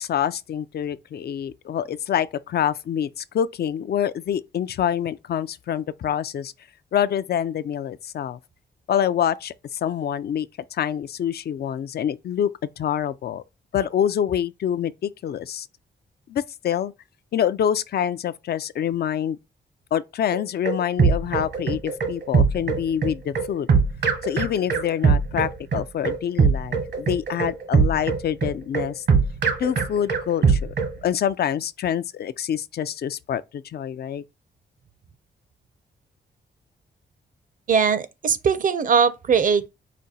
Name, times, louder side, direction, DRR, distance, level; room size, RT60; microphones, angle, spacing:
voice 1, 0.0-6.5 6.9-8.4 8.9-13.4 13.7-15.7 16.3-16.9 17.3-19.4 19.9-23.7 24.2-29.0 29.6-30.7 31.0-34.2, left 9 dB, 60° left, 0.4 m, -26 dB
sound 1, 20.3-30.9, right 5 dB, 70° right, 1.1 m, -21 dB
voice 2, 37.7-39.7, right 6 dB, 45° right, 0.6 m, -20 dB
5.1 x 2.2 x 4.1 m
cardioid pair, 75°, 19 cm